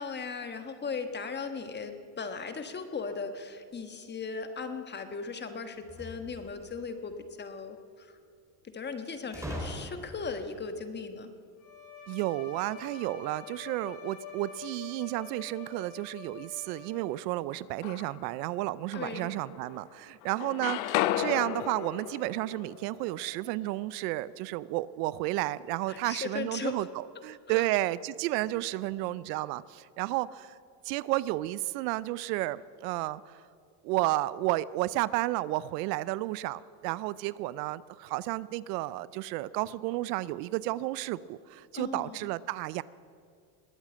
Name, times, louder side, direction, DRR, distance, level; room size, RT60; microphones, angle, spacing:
voice 1, 0.0-8.1 8.7-11.3 18.9-19.3 25.9-26.9 27.5-27.7 41.7-42.3, left 5 dB, 20° left, 8 dB, 1.3 m, -37 dB
sound 1, 5.8-6.9 9.3-10.4, equal, 5° right, 3.0 m, -40 dB
Bowed string instrument, 11.6-17.4, left 7 dB, 45° left, 3.7 m, -46 dB
voice 2, 12.1-30.5 30.8-33.4 33.8-42.8, right 17 dB, 75° right, 19 dB, 0.6 m, -32 dB
sound 2, 17.5-18.4 18.9-20.0 20.2-24.2, left 14 dB, 75° left, 0.9 m, -34 dB
20.5 x 8.6 x 7.5 m, 2.2 s
supercardioid pair, 125°, 50 cm